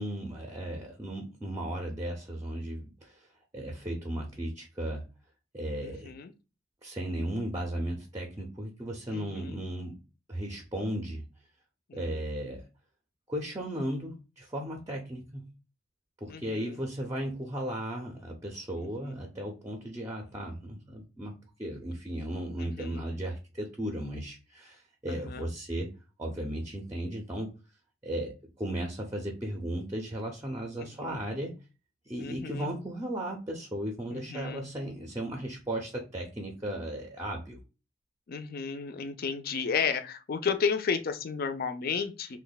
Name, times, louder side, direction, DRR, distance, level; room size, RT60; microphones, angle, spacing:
voice 1, 0.0-3.3 3.5-5.0 5.5-6.1 6.8-10.0 10.3-11.3 11.9-12.6 13.3-15.5 16.2-25.9 26.2-27.5 28.0-31.6 32.1-37.6, right 1 dB, 15° right, 2 dB, 0.5 m, -35 dB
voice 2, 5.8-6.3 9.1-9.6 11.9-12.2 16.3-16.8 19.0-19.1 22.6-23.0 25.1-25.5 30.8-31.2 32.2-32.7 34.1-34.7 38.3-42.4, left 5 dB, 50° left, 9 dB, 0.4 m, -33 dB
2.9 x 2.2 x 3.9 m, 0.31 s
head